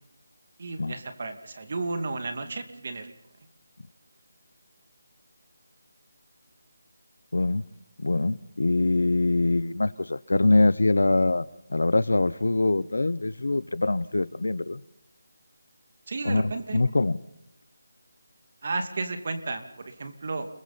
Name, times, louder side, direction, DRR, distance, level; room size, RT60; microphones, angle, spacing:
voice 1, 0.6-3.1 16.1-16.8 18.6-20.5, right 3 dB, 40° right, 2.5 m, -33 dB
voice 2, 7.3-7.6 8.0-14.8 16.2-17.2, left 2 dB, 85° left, 1.0 m, -24 dB
30.0 x 22.0 x 4.3 m
figure-of-eight pair, 175°, 0 cm